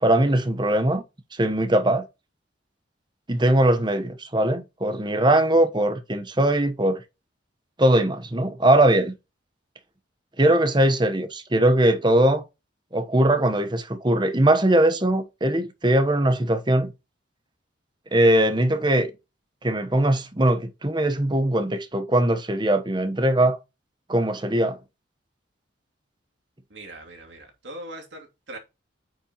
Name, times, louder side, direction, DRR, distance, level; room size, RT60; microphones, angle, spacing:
voice 1, 0.0-1.0 1.3-2.0 3.3-7.0 7.8-9.1 10.4-12.4 12.9-16.9 18.1-19.1 19.6-23.6 24.1-24.8, right 1 dB, 25° right, 1.0 m, -20 dB
voice 2, 26.7-28.6, right 1 dB, 70° right, 2.8 m, -40 dB
8.9 x 5.8 x 3.0 m
head